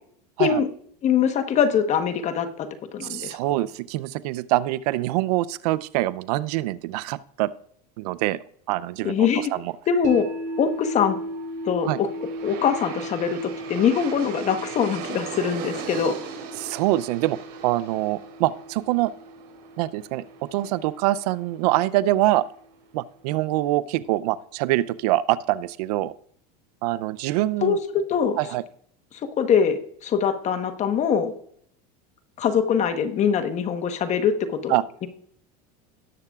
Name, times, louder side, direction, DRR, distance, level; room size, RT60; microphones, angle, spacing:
voice 1, 1.0-3.4 9.0-9.5 9.9-10.3 10.6-11.2 11.6-12.1 12.4-16.2 27.6-28.4 29.1-31.3 32.4-34.7, left 7 dB, 35° left, 8 dB, 1.1 m, -23 dB
voice 2, 3.0-7.5 8.0-8.4 8.7-9.7 11.8-12.0 16.6-17.4 17.6-19.1 19.8-22.4 22.9-26.1 26.8-27.8 28.4-28.6 34.7-34.8, right 16 dB, 75° right, 18 dB, 0.5 m, -24 dB
sound 1, 10.0-22.2, right 1 dB, 35° right, 2.5 m, -37 dB
Aircraft, 11.4-22.4, right 7 dB, 55° right, 3.7 m, -40 dB
18.5 x 6.7 x 2.4 m, 0.65 s
supercardioid pair, 120°, 21 cm